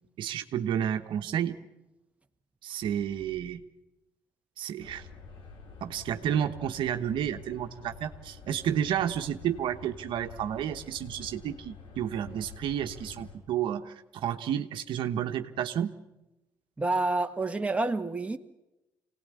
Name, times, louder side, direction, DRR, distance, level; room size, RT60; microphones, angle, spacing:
voice 1, 0.2-1.6 2.6-3.6 4.6-5.1 5.8-15.9, right 9 dB, 70° right, 1.2 m, -31 dB
sound 1, 4.8-13.4, left 4 dB, 65° left, 5.2 m, -48 dB
voice 2, 16.8-18.4, right 2 dB, 15° right, 1.6 m, -28 dB
24.5 x 18.5 x 9.6 m
supercardioid pair, 75°, 9 cm